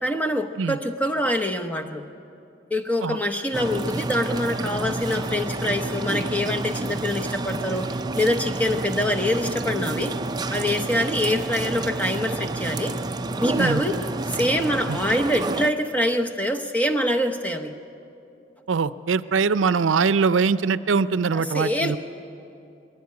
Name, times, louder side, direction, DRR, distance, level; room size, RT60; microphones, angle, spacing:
voice 1, 0.0-2.1 2.7-10.2 10.5-13.0 13.4-14.0 14.3-17.7 21.3-22.0, left 1 dB, 10° left, 4 dB, 0.9 m, -25 dB
sound 1, 3.5-15.7, right 2 dB, 20° right, 0.5 m, -29 dB
voice 2, 18.7-22.0, right 5 dB, 85° right, 15 dB, 0.5 m, -22 dB
21.0 x 16.0 x 9.6 m, 2.7 s
head